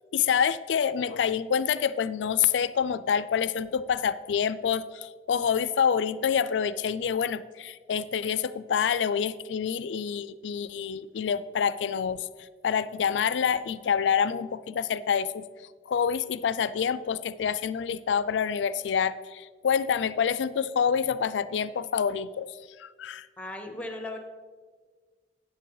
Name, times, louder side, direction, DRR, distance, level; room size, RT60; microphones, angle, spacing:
voice 1, 0.1-12.3 12.6-15.4 15.9-22.5 22.8-23.3, left 7 dB, 85° left, 16 dB, 0.4 m, -27 dB
voice 2, 23.4-24.2, left 1 dB, 5° left, 4 dB, 0.9 m, -36 dB
8.7 x 8.3 x 3.9 m, 1.5 s
head